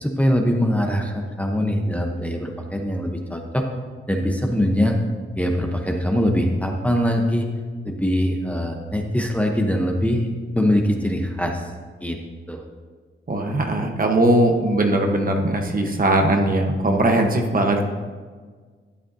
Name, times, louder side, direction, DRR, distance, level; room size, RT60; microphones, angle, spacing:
voice 1, 0.0-3.6 4.1-5.0 5.4-7.5 7.8-10.3 10.5-11.6 12.0-12.2 12.5-12.6, equal, 5° left, 2 dB, 0.9 m, -22 dB
voice 2, 13.3-17.8, right 1 dB, 40° right, 3 dB, 1.1 m, -20 dB
13.0 x 9.4 x 2.7 m, 1.5 s
wide cardioid pair, 105°, 21 cm